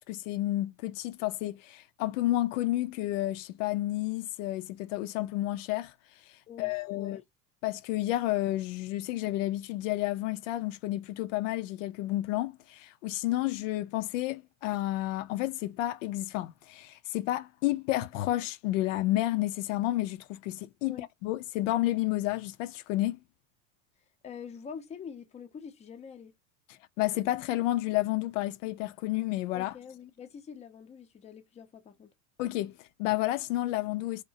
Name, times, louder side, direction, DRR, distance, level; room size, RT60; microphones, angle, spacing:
voice 1, 0.1-5.9 6.6-7.2 7.6-23.2 27.0-29.7 32.4-34.2, left 16 dB, 75° left, 0.5 m, -31 dB
voice 2, 6.5-7.2 20.8-21.1 24.2-26.3 29.5-32.1, left 7 dB, 20° left, 0.5 m, -45 dB
2.8 x 2.1 x 2.6 m
supercardioid pair, 115°, 38 cm